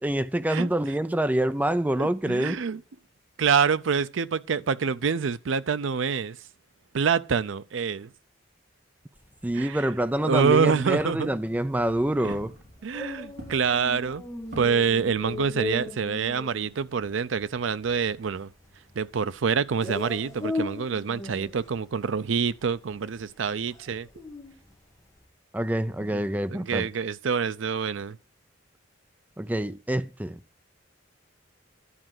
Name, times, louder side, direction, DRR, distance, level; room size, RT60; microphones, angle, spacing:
voice 1, 0.0-2.6 9.4-12.6 25.5-26.9 29.4-30.4, right 1 dB, 10° right, 0.5 m, -26 dB
voice 2, 2.0-2.8 3.4-6.4 6.9-8.1 9.6-9.8 10.2-11.3 12.2-12.3 12.8-14.2 14.6-18.5 19.0-24.1 26.5-28.2, right 6 dB, 80° right, 0.5 m, -26 dB
sound 1, 9.2-25.3, left 2 dB, 15° left, 1.6 m, -39 dB
Walk footsteps, 11.6-16.0, right 1 dB, 60° right, 4.5 m, -48 dB
11.0 x 4.9 x 7.7 m
head